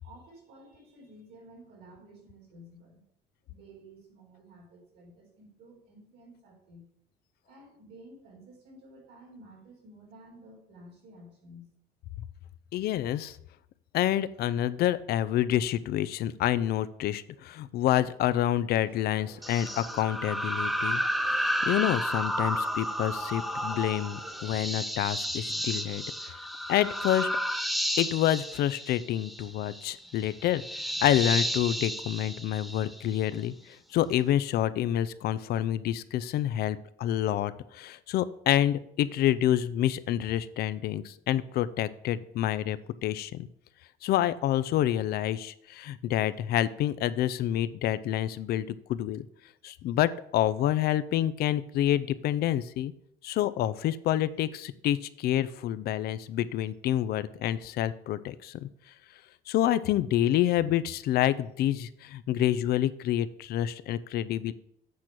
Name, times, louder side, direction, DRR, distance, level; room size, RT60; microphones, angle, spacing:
voice 1, 0.0-3.0 3.5-6.9 7.5-11.7, right 1 dB, 85° right, -2 dB, 3.9 m, -52 dB
voice 2, 12.7-13.4 13.9-21.0 21.3-26.4 26.7-27.3 28.0-30.6 31.0-43.5 44.0-49.3 49.6-52.9 53.2-58.7 59.5-64.5, left 12 dB, 70° left, 16 dB, 0.5 m, -28 dB
sound 1, 18.8-24.6, right 3 dB, 30° right, 1.5 m, -52 dB
sound 2, 19.4-33.3, equal, ahead, 0.5 m, -32 dB
8.4 x 4.5 x 6.3 m, 0.73 s
cardioid pair, 110°, 17 cm